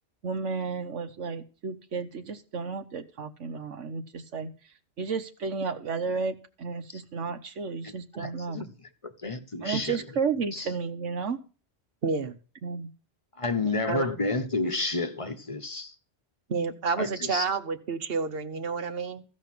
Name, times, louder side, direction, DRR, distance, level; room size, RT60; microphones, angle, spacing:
voice 1, 0.2-4.5 5.0-8.6 9.6-11.4 12.6-12.9 13.6-13.8, right 5 dB, 85° right, 1.5 m, -32 dB
voice 2, 7.8-10.0 10.5-10.7 13.4-15.9 17.0-17.5, left 3 dB, 30° left, 1.0 m, -31 dB
voice 3, 12.0-12.4 13.9-14.1 16.5-19.2, right 5 dB, 55° right, 1.2 m, -29 dB
15.0 x 5.4 x 7.6 m
omnidirectional pair, 1.2 m